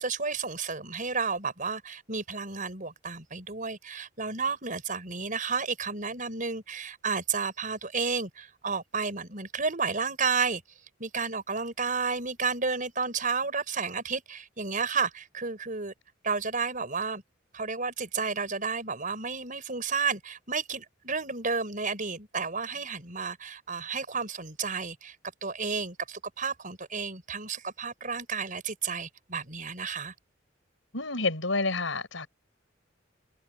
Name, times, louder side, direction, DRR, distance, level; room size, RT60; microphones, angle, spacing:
voice 1, 0.0-10.6 11.0-15.9 16.2-17.2 17.5-25.2 25.4-30.1, right 5 dB, 45° right, 6.1 m, -32 dB
voice 2, 30.9-32.3, left 3 dB, 80° left, 5.7 m, -29 dB
head